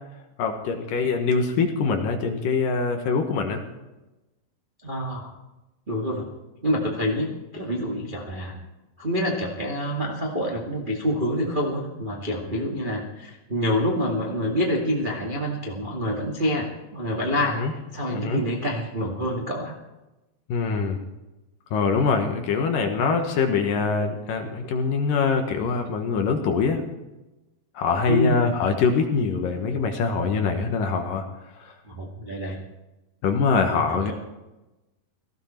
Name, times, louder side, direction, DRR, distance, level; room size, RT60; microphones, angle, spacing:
voice 1, 0.4-3.6 17.6-17.7 18.1-18.4 20.5-21.0 21.7-26.8 27.8-31.2 31.6-31.7 33.2-34.1, left 5 dB, 65° left, 4 dB, 2.5 m, -23 dB
voice 2, 4.8-5.3 5.9-6.3 6.6-8.6 9.0-19.7 28.1-28.5 31.8-32.6 33.7-34.1, equal, 65° right, -3 dB, 0.5 m, -27 dB
18.0 x 15.0 x 4.4 m, 1.0 s
omnidirectional pair, 4.9 m